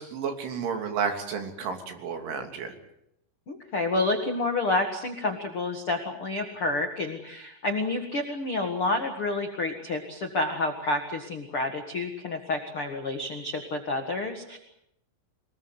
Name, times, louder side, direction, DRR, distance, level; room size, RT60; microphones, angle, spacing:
voice 1, 0.0-2.7, right 6 dB, 70° right, 5 dB, 5.4 m, -31 dB
voice 2, 3.5-14.6, left 2 dB, 55° left, 4 dB, 1.5 m, -29 dB
25.5 x 20.5 x 8.1 m, 0.78 s
omnidirectional pair, 5.8 m